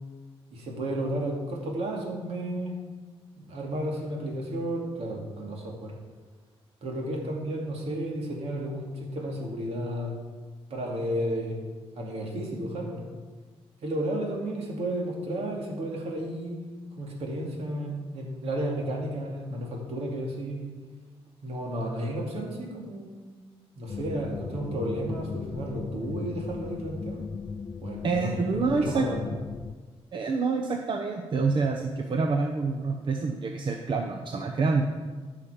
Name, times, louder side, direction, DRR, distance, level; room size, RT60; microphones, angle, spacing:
voice 1, 0.5-2.8 3.4-5.9 6.8-10.2 10.7-11.6 12.0-13.0 13.8-16.6 17.0-20.7 21.4-23.1 23.8-27.2 27.8-29.3, right 1 dB, 70° right, -1 dB, 2.5 m, -32 dB
sound 1, 23.9-29.7, left 5 dB, 30° left, 0.4 m, -37 dB
voice 2, 28.0-29.1 30.1-34.9, right 4 dB, 50° right, 3 dB, 0.8 m, -27 dB
14.5 x 5.8 x 5.0 m, 1.4 s
cardioid pair, 105°, 11 cm